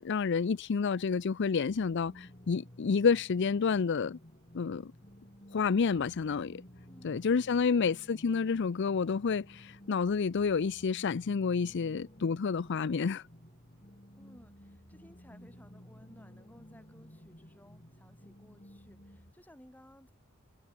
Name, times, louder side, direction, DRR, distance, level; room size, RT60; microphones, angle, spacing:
voice 1, 0.0-4.2 4.5-4.9 5.5-6.6 7.0-13.2, left 5 dB, 55° left, 0.5 m, -29 dB
sound 1, 1.7-19.3, equal, 35° left, 5.7 m, -54 dB
voice 2, 6.9-7.8 14.1-20.1, equal, 10° left, 6.5 m, -59 dB
head